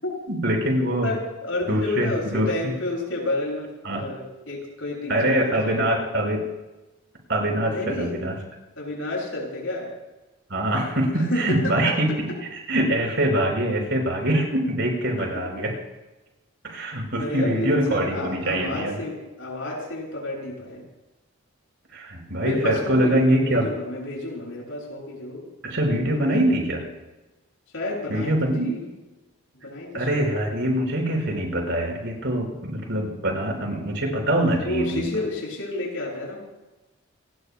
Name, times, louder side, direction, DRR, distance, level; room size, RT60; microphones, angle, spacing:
voice 1, 0.3-1.1 1.7-2.5 3.8-4.0 5.1-6.5 7.3-8.3 10.5-12.3 12.7-15.7 16.6-19.0 21.9-23.7 25.6-26.8 28.1-28.7 29.9-35.1, right 1 dB, 60° right, 0 dB, 5.7 m, -24 dB
voice 2, 1.0-5.9 7.7-8.1 8.8-9.9 11.1-12.0 15.2-15.3 15.5-15.6 17.2-20.8 22.4-25.4 26.0-26.5 27.7-28.4 28.6-28.9 29.6-30.2 34.6-36.4, left 2 dB, 70° left, -2 dB, 7.5 m, -30 dB
29.0 x 20.0 x 2.3 m, 1.1 s
head